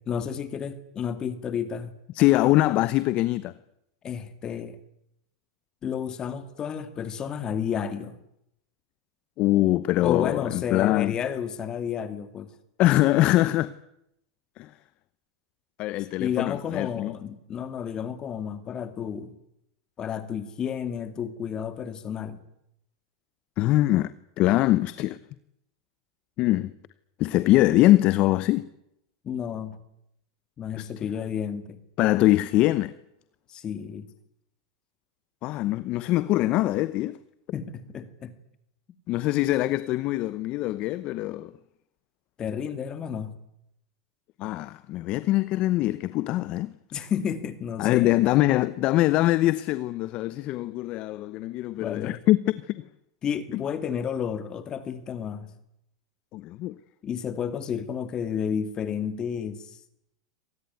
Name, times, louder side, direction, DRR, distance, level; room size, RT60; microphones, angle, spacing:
voice 1, 0.1-1.9 4.0-4.8 5.8-8.2 10.0-12.5 16.2-19.3 20.0-22.4 29.2-29.8 30.6-31.8 33.5-34.1 37.5-38.3 42.4-43.3 46.9-48.2 51.8-52.2 53.2-55.5 57.0-59.8, left 8 dB, 30° left, 2.2 m, -31 dB
voice 2, 2.1-3.5 9.4-11.1 12.8-13.7 14.6-14.7 15.8-17.1 23.6-25.2 26.4-26.7 27.2-28.7 30.8-30.9 32.0-32.9 35.4-37.2 39.1-41.5 44.4-46.7 47.8-52.5 53.5-53.6 56.3-56.7, left 16 dB, 45° left, 0.9 m, -23 dB
26.0 x 19.0 x 9.5 m
supercardioid pair, 125°, 3 cm